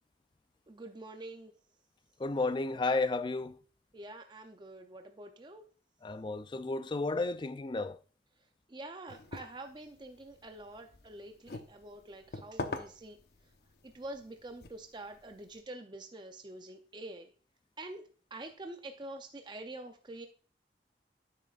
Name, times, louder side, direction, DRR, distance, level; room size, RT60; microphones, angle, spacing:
voice 1, 0.7-1.5 3.9-5.6 8.7-13.2 13.9-17.3 17.8-18.0 18.3-20.3, right 2 dB, 25° right, 0.5 m, -46 dB
voice 2, 2.2-3.6 6.0-8.0, left 3 dB, 25° left, 0.3 m, -32 dB
sound 1, 9.1-15.6, left 2 dB, 60° left, 0.7 m, -46 dB
9.6 x 7.7 x 2.4 m
head